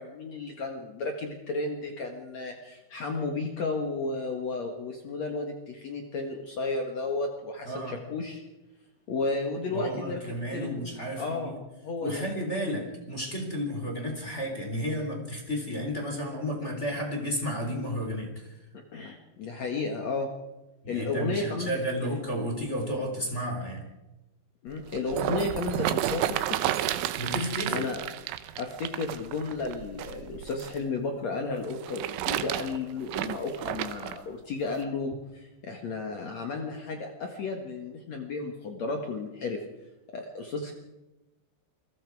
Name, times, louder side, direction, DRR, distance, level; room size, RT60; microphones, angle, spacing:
voice 1, 0.0-8.4 9.1-10.8 11.2-11.5 11.8-12.2 12.7-12.8 18.9-20.3 20.9-21.8 24.6-26.7 27.7-28.0 28.6-39.6 40.1-40.7, left 3 dB, 90° left, 3 dB, 1.5 m, -33 dB
voice 2, 7.6-8.0 9.7-11.6 12.0-18.5 20.8-23.8 27.2-27.9, equal, 15° left, 1 dB, 3.1 m, -32 dB
sound 1, 24.7-30.8 31.6-34.2 34.8-34.9, right 12 dB, 75° right, 3.1 m, -31 dB
28.5 x 22.5 x 4.8 m, 1.0 s
omnidirectional pair, 5.9 m